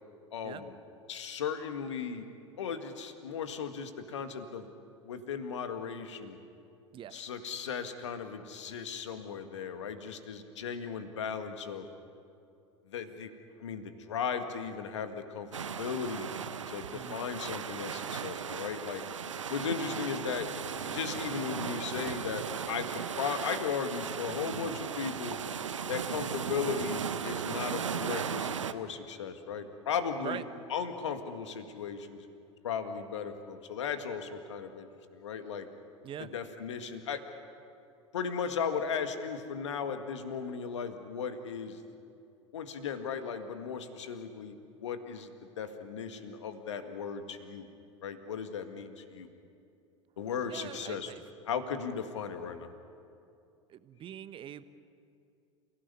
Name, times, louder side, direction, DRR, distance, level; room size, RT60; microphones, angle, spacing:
voice 1, 0.3-0.7 1.1-2.3 2.6-4.7 5.0-6.4 7.1-11.9 12.9-13.3 13.6-15.5 15.8-16.3 16.7-19.0 19.5-20.5 20.8-25.4 25.9-30.4 30.7-32.3 32.6-35.7 36.2-37.2 38.1-41.8 42.5-45.3 45.6-47.7 48.0-49.3 50.2-51.1 51.5-52.7, left 6 dB, 70° left, 8 dB, 1.9 m, -36 dB
voice 2, 6.9-7.3 16.9-17.3 30.2-30.4 36.0-36.3 50.5-51.2 53.7-54.6, right 10 dB, 35° right, 13 dB, 1.1 m, -43 dB
sound 1, 15.5-28.7, right 7 dB, 80° right, 0.9 m, -37 dB
28.5 x 16.5 x 9.7 m, 2.6 s
figure-of-eight pair, 80°, 16 cm